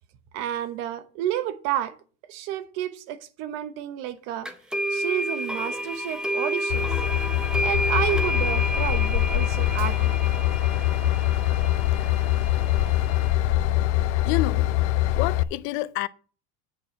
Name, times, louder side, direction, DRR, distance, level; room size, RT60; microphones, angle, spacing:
voice 1, 0.3-2.0 2.3-4.5 4.9-6.9 7.6-10.1, right 11 dB, 45° right, 0.9 m, -30 dB
sound 1, 4.5-13.3, equal, ahead, 0.7 m, -30 dB
Train / Engine, 6.7-15.4, left 14 dB, 80° left, 0.7 m, -23 dB
voice 2, 14.3-14.7 15.2-16.1, left 18 dB, 40° left, 0.5 m, -28 dB
8.6 x 4.7 x 6.9 m
cardioid pair, 175°, 35 cm